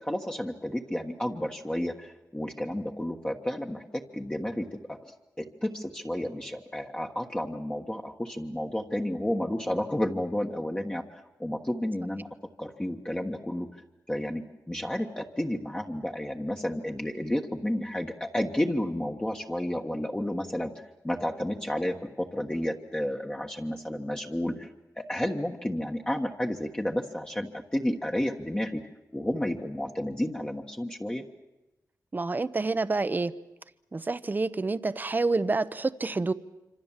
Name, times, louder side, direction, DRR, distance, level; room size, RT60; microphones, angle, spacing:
voice 1, 0.0-5.1 5.4-12.3 12.6-13.7 14.1-20.7 21.0-24.7 25.0-28.8 29.1-31.2, left 1 dB, 15° left, 1 dB, 1.4 m, -31 dB
voice 2, 32.1-33.3 33.9-36.3, right 3 dB, 30° right, 14 dB, 0.8 m, -28 dB
26.0 x 26.0 x 7.4 m, 1.0 s
wide cardioid pair, 130°, 7 cm